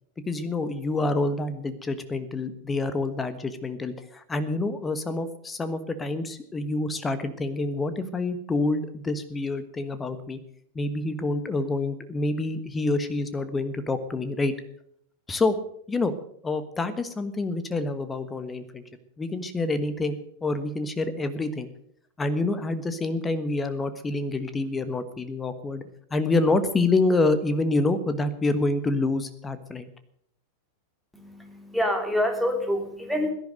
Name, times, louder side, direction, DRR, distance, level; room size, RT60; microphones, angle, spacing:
voice 1, 0.3-10.4 10.7-14.5 15.3-15.6 15.9-16.1 16.4-18.8 19.2-21.7 22.2-25.8 26.1-29.9, left 2 dB, 15° left, 11 dB, 1.3 m, -27 dB
voice 2, 31.1-33.3, left 1 dB, ahead, 3 dB, 3.0 m, -27 dB
17.0 x 11.0 x 6.5 m, 0.67 s
figure-of-eight pair, 90°, 0 cm